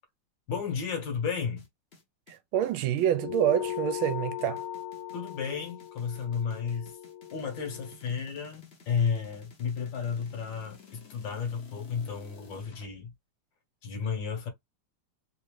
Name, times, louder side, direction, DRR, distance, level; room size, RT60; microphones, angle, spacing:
voice 1, 0.5-1.7 5.1-6.9 7.3-13.1 13.8-14.5, left 6 dB, 65° left, 1.8 m, -32 dB
sound 1, 1.6-12.9, left 5 dB, 45° left, 0.9 m, -55 dB
voice 2, 2.3-4.6, right 11 dB, 80° right, 1.4 m, -27 dB
sound 2, 3.2-8.0, left 11 dB, 90° left, 1.7 m, -38 dB
3.7 x 2.6 x 3.1 m
omnidirectional pair, 2.3 m